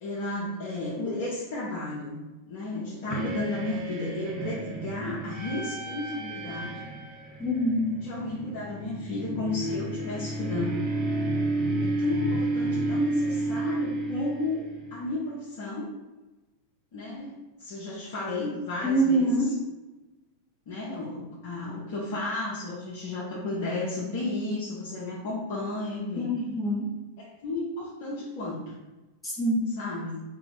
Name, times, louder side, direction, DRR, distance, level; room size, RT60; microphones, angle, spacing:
voice 1, 0.0-6.8 8.0-10.8 11.8-15.9 16.9-19.4 20.7-26.3 27.2-28.7 29.8-30.2, left 2 dB, 50° left, -7 dB, 0.8 m, -33 dB
sound 1, 3.1-15.2, right 2 dB, 35° right, 0.5 m, -31 dB
voice 2, 7.4-7.9 18.8-19.5 26.2-26.9 29.2-29.6, right 1 dB, 5° left, -6 dB, 0.7 m, -25 dB
2.8 x 2.2 x 4.0 m, 1.1 s
figure-of-eight pair, 90°, 0 cm